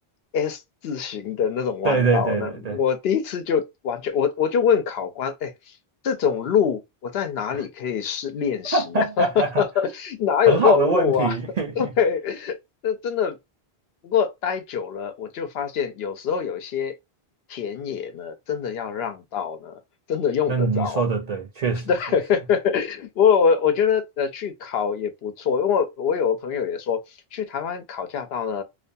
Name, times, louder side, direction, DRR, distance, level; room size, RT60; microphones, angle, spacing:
voice 1, 0.3-5.5 6.0-9.2 9.6-11.3 11.8-12.6 12.8-13.4 14.0-16.9 17.5-19.8 20.1-21.0 21.9-27.0 27.3-28.6, left 7 dB, 75° left, 0.8 m, -24 dB
voice 2, 1.8-2.8 7.5-7.6 8.7-9.6 10.5-11.9 20.5-21.9, right 3 dB, 50° right, 0.5 m, -23 dB
2.4 x 2.2 x 2.5 m
omnidirectional pair, 1.0 m